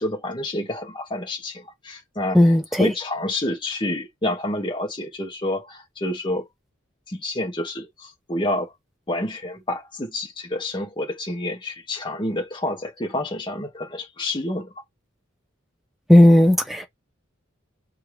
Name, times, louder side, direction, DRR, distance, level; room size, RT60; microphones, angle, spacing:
voice 1, 0.0-6.5 7.1-8.7 9.1-14.7, left 1 dB, 25° left, 0.9 m, -28 dB
voice 2, 2.3-2.9 16.1-16.9, left 1 dB, ahead, 0.6 m, -14 dB
4.5 x 2.3 x 3.2 m
head